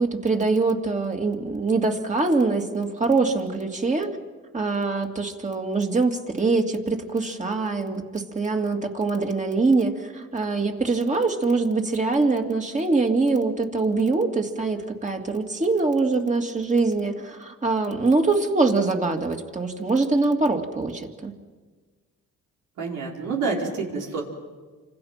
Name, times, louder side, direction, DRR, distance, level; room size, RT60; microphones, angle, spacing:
voice 1, 0.0-4.2 4.5-21.3, right 3 dB, 25° right, 3 dB, 2.8 m, -23 dB
voice 2, 22.8-24.2, right 4 dB, 90° right, -1 dB, 5.1 m, -28 dB
29.5 x 26.0 x 6.0 m, 1.4 s
cardioid pair, 90°, 30 cm